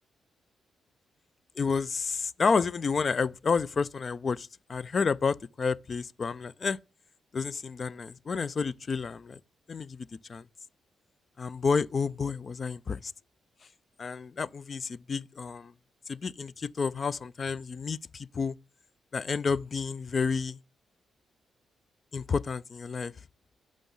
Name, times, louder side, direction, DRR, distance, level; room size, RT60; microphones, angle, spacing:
voice 1, 1.6-6.8 7.3-9.4 9.7-10.4 11.4-13.1 14.0-15.7 16.1-18.5 19.1-20.6 22.1-23.1, left 5 dB, 50° left, 0.4 m, -30 dB
6.3 x 5.3 x 7.0 m
hypercardioid pair, 45°, 0 cm